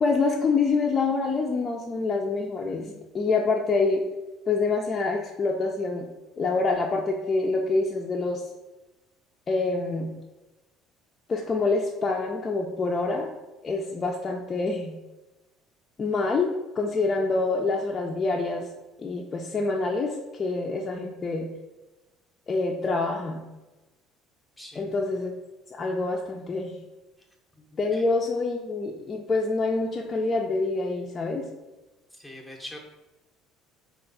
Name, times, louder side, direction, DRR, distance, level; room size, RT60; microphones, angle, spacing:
voice 1, 0.0-4.0 4.5-6.1 6.4-8.4 9.5-10.1 11.3-13.3 13.6-15.0 16.0-18.7 19.0-21.5 22.5-23.4 24.8-25.3 25.7-26.7 27.8-31.4, left 3 dB, 35° left, -1 dB, 0.4 m, -26 dB
voice 2, 24.6-24.9 27.7-28.0 32.1-32.8, left 1 dB, 5° left, -1 dB, 0.7 m, -43 dB
3.2 x 2.4 x 3.9 m, 1.1 s
hypercardioid pair, 75°, 0 cm